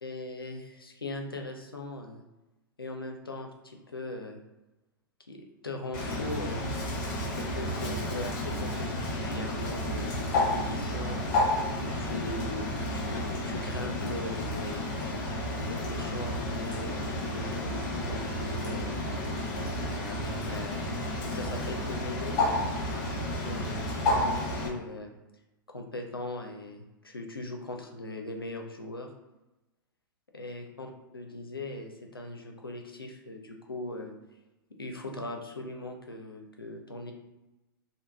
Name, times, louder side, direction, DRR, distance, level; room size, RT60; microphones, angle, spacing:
voice 1, 0.0-2.2 2.8-4.4 5.3-6.6 7.4-11.3 11.8-15.0 15.6-19.0 19.8-20.8 21.3-22.4 22.8-23.6 24.1-25.1 25.7-29.1 30.3-34.1 34.8-37.1, left 2 dB, 90° left, 3 dB, 0.4 m, -39 dB
Bird, 5.9-24.7, left 1 dB, 45° left, 0.7 m, -31 dB
3.1 x 2.1 x 2.2 m, 1.0 s
figure-of-eight pair, 100°, 12 cm